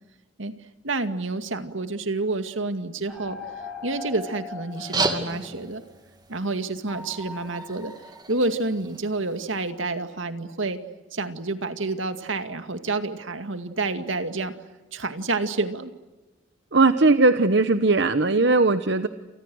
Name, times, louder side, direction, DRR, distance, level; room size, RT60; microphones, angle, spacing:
voice 1, 0.8-3.4 3.8-5.8 6.3-7.9 8.3-10.8 11.1-14.5 14.9-15.9, right 3 dB, 80° right, 8 dB, 2.3 m, -28 dB
sound 1, 3.1-5.7 6.9-8.2, left 3 dB, 5° right, 6.1 m, -40 dB
sound 2, 4.7-9.7, right 3 dB, 20° right, 2.5 m, -34 dB
voice 2, 16.7-19.1, right 3 dB, 60° right, 10 dB, 1.0 m, -19 dB
29.5 x 28.5 x 6.4 m, 1.1 s
head